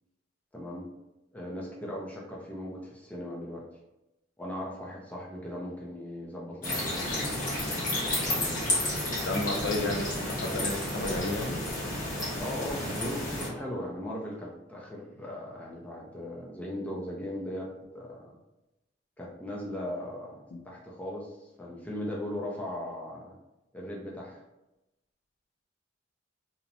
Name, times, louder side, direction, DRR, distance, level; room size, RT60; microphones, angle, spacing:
voice 1, 0.5-0.9 1.3-3.6 4.4-7.2 7.9-8.7 12.4-18.3 19.2-23.4 23.7-24.4, left 1 dB, 10° left, -3 dB, 0.4 m, -38 dB
sound 1, 6.6-13.5, left 1 dB, 45° left, 1.1 m, -31 dB
voice 2, 9.2-11.6 20.5-20.6, left 2 dB, 65° left, 1 dB, 0.5 m, -32 dB
2.8 x 2.1 x 2.5 m, 0.95 s
head